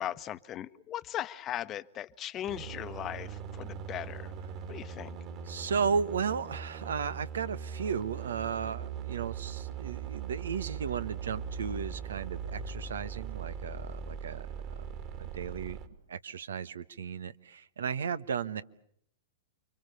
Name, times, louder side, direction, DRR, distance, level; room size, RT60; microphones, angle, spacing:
voice 1, 0.0-4.3 4.7-5.2, left 11 dB, 30° left, 13 dB, 1.1 m, -38 dB
sound 1, 2.5-15.9, right 7 dB, 40° right, 3.0 m, -40 dB
voice 2, 5.5-14.5 15.2-15.8 16.1-18.6, right 6 dB, 75° right, 15 dB, 1.2 m, -34 dB
29.5 x 24.5 x 6.9 m, 0.67 s
hypercardioid pair, 110°, 0 cm